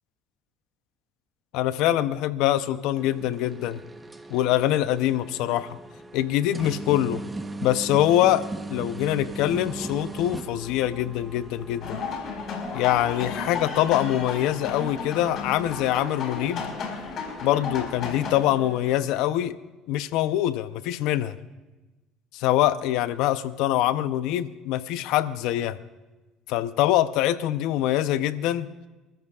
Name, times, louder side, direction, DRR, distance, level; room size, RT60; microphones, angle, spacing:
voice 1, 1.5-3.8 4.3-5.8 6.1-7.2 7.6-8.4 8.7-12.0 12.7-16.7 17.4-19.5 19.9-21.4 22.3-25.8 26.5-28.7, left 13 dB, 75° left, 13 dB, 0.7 m, -24 dB
sound 1, 3.0-19.3, right 2 dB, 15° right, 1.0 m, -40 dB
sound 2, 8.9-18.3, equal, ahead, 4.6 m, -49 dB
sound 3, 11.8-18.4, left 5 dB, 60° left, 4.4 m, -33 dB
28.5 x 13.5 x 2.4 m, 1.1 s
supercardioid pair, 95°, 0 cm